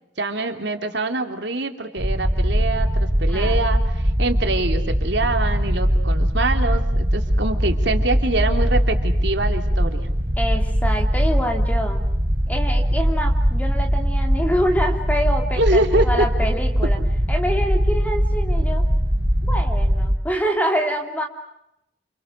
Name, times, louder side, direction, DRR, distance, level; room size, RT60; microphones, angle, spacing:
voice 1, 0.2-10.1 15.6-16.3, right 2 dB, 75° right, 5 dB, 3.0 m, -24 dB
sound 1, 2.0-20.2, equal, 50° right, 4.9 m, -21 dB
voice 2, 10.4-12.0 12.5-17.0 17.3-18.9 19.5-21.3, equal, 10° left, 3 dB, 3.0 m, -26 dB
29.0 x 28.5 x 6.3 m, 0.83 s
head